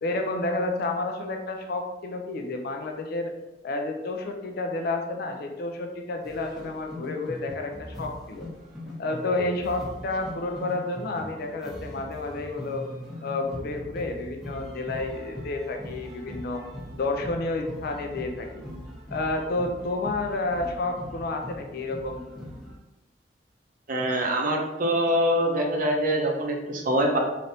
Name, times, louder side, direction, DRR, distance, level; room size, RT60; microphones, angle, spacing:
voice 1, 0.0-3.3 3.6-8.5 9.0-12.8 13.2-16.6 17.0-18.6 19.1-22.2, left 2 dB, 60° left, 4 dB, 0.4 m, -30 dB
sound 1, 6.2-22.8, left 1 dB, ahead, 0.8 m, -41 dB
voice 2, 23.9-27.2, equal, 50° right, 1 dB, 0.6 m, -24 dB
3.3 x 2.6 x 2.7 m, 1.0 s
head